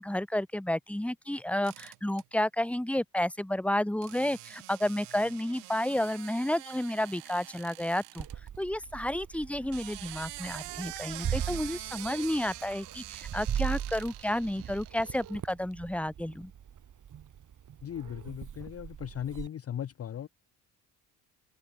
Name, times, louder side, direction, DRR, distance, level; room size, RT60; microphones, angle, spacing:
voice 1, 0.0-8.3 8.6-16.5, left 1 dB, 5° left, 1.7 m, -31 dB
sound 1, 1.6-2.2 4.0-8.3 9.5-15.4, right 22 dB, 80° right, 3.0 m, -45 dB
Meow, 8.2-19.5, right 9 dB, 45° right, 1.9 m, -39 dB
voice 2, 17.8-20.3, left 10 dB, 35° left, 0.7 m, -37 dB
supercardioid pair, 65°, 41 cm